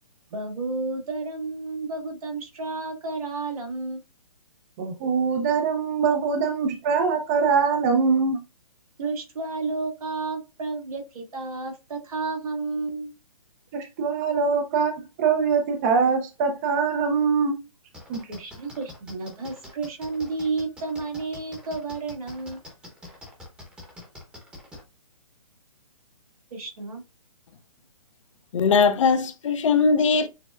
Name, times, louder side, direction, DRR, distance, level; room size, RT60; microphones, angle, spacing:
voice 1, 0.3-4.0 9.0-13.1 18.3-22.6 26.5-27.0, right 3 dB, 70° right, 1.8 m, -31 dB
voice 2, 4.8-8.4 13.7-14.9 15.2-17.6 18.1-18.2, right 5 dB, 25° right, 0.5 m, -23 dB
sound 1, 17.9-24.8, left 2 dB, 5° right, 0.9 m, -44 dB
voice 3, 28.5-30.3, left 5 dB, 55° left, 0.6 m, -20 dB
6.5 x 2.2 x 2.4 m
hypercardioid pair, 145°, 19 cm